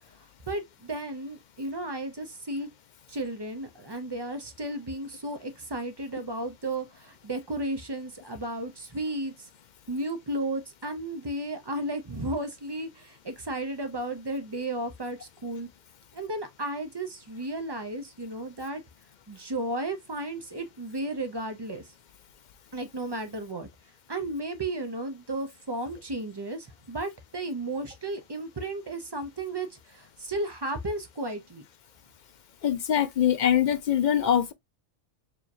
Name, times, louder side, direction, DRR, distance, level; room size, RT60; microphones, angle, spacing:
voice 1, 0.5-2.7 3.1-9.5 9.9-15.7 16.1-18.8 19.3-21.8 22.7-23.7 24.1-31.7, right 1 dB, 30° right, 0.5 m, -34 dB
voice 2, 32.6-34.5, left 9 dB, 60° left, 0.5 m, -23 dB
4.8 x 2.9 x 2.6 m
omnidirectional pair, 1.2 m